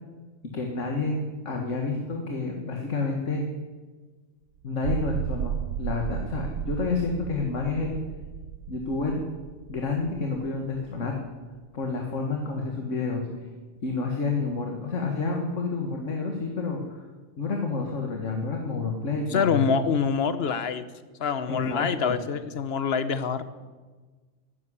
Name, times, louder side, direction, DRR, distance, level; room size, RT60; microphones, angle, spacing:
voice 1, 0.5-3.4 4.6-5.5 5.8-8.0 8.7-9.2 9.7-11.2 11.7-13.3 13.8-17.0 17.4-19.6 21.5-22.2, left 3 dB, 80° left, 2 dB, 2.0 m, -29 dB
sound 1, 4.7-11.2, right 10 dB, 80° right, 1.0 m, -34 dB
voice 2, 19.3-20.9 21.2-23.4, left 6 dB, 60° left, 13 dB, 1.1 m, -25 dB
13.5 x 10.0 x 9.8 m, 1.3 s
omnidirectional pair, 1.3 m